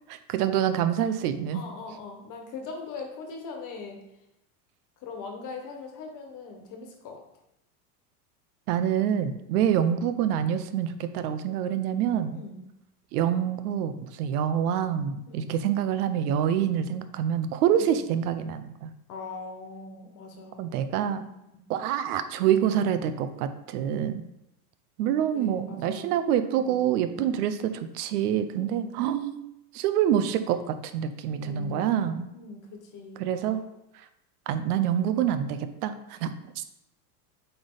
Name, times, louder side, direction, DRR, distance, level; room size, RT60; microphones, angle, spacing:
voice 1, 0.3-1.6 8.7-12.4 13.1-18.9 20.6-21.2 21.7-24.2 25.0-29.4 29.7-32.3 33.2-33.6 34.5-36.3 36.6-36.7, right 9 dB, 75° right, 11 dB, 0.7 m, -26 dB
voice 2, 1.5-4.0 5.0-7.2 12.3-12.6 15.3-15.5 16.8-16.9 17.8-17.9 19.1-20.7 21.5-21.6 25.3-26.1 26.5-26.8 27.1-27.4 28.6-29.0 31.4-33.6, left 4 dB, 40° left, 3 dB, 1.4 m, -41 dB
7.8 x 3.5 x 3.9 m, 0.87 s
supercardioid pair, 135°, 46 cm